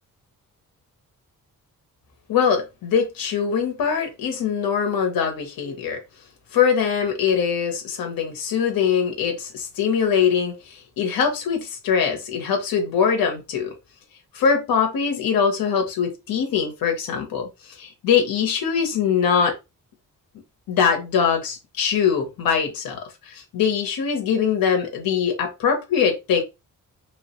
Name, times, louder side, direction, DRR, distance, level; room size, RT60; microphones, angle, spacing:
voice 1, 2.3-6.0 6.5-13.7 14.3-19.5 20.7-26.4, left 7 dB, 80° left, 0.7 m, -22 dB
3.0 x 2.0 x 2.8 m
wide cardioid pair, 180°, 34 cm